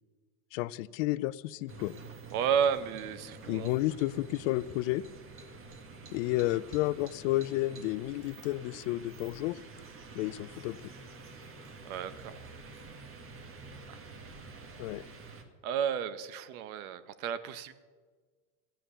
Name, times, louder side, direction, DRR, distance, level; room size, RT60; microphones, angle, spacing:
voice 1, 0.5-1.9 3.5-5.0 6.1-9.6 10.1-10.8 14.8-15.0, left 17 dB, 60° left, 18 dB, 0.6 m, -31 dB
sound 1, 1.7-15.4, right 3 dB, 30° right, 1.7 m, -48 dB
voice 2, 2.3-3.7 11.8-12.3 13.9-14.0 15.6-17.7, right 8 dB, 70° right, 13 dB, 1.1 m, -32 dB
14.5 x 9.1 x 6.9 m, 1.5 s
supercardioid pair, 115°, 43 cm